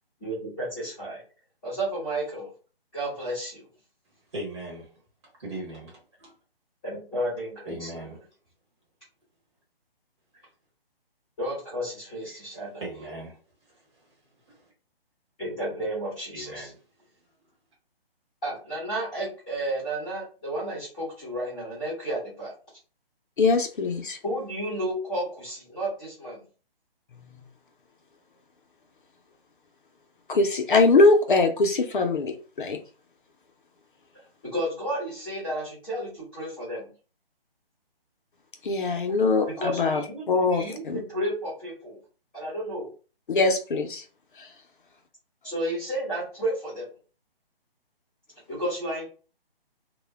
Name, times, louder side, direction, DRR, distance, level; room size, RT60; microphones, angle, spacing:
voice 1, 0.2-1.2 1.6-2.5 2.9-3.7 6.8-8.1 11.4-12.8 15.4-16.7 18.4-22.5 24.2-26.4 34.5-36.9 39.5-42.0 42.3-42.9 45.4-46.9 48.5-49.0, right 1 dB, 5° left, 0.6 m, -32 dB
voice 2, 4.3-4.9 5.4-6.3 7.7-8.2 12.3-12.4 12.8-13.4 14.5-14.6 16.3-16.8, right 1 dB, 30° right, 1.0 m, -38 dB
voice 3, 23.4-24.2 27.1-27.4 30.3-32.8 38.6-41.0 43.3-44.0 44.4-44.5, left 3 dB, 55° left, 0.5 m, -22 dB
2.1 x 2.1 x 3.3 m
hypercardioid pair, 160°, 30 cm